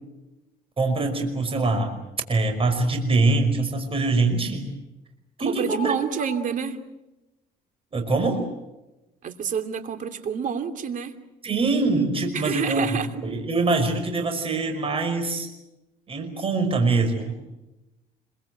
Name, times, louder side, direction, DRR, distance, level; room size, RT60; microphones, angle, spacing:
voice 1, 0.8-2.0 2.3-4.7 5.4-5.9 7.9-8.4 11.4-12.9 13.2-15.5 16.1-17.3, right 3 dB, 35° right, 6 dB, 5.4 m, -23 dB
voice 2, 5.4-6.8 9.2-11.1 12.3-13.1, right 7 dB, 50° right, 7 dB, 2.9 m, -28 dB
26.5 x 24.0 x 7.9 m, 0.99 s
cardioid pair, 110°, 17 cm